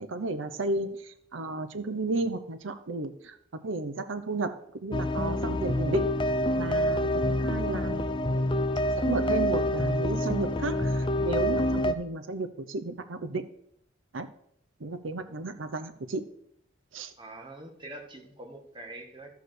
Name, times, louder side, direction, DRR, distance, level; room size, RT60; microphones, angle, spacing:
voice 1, 0.0-3.4 3.6-6.2 6.5-8.1 9.0-13.5 14.1-14.3 14.8-16.3 16.9-17.1, right 2 dB, 85° right, 10 dB, 0.7 m, -33 dB
sound 1, 4.9-11.9, left 1 dB, 25° left, 0.6 m, -27 dB
voice 2, 17.2-19.3, right 2 dB, 25° right, 2 dB, 1.6 m, -44 dB
12.5 x 4.7 x 6.4 m, 0.72 s
head